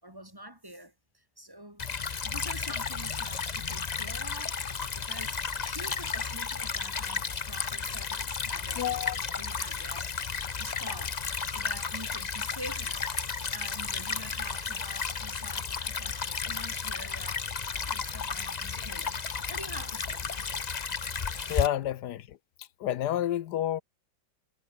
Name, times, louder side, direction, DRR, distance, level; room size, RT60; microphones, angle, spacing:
voice 1, 0.0-10.2 10.6-17.4 17.7-19.2 19.5-20.5, right 1 dB, 10° right, 4.9 m, -46 dB
Stream / Trickle dribble, 1.8-21.7, left 5 dB, 40° left, 0.6 m, -33 dB
voice 2, 8.8-9.2 21.5-22.4 22.8-23.8, left 11 dB, 70° left, 1.2 m, -29 dB
omnidirectional pair, 2.1 m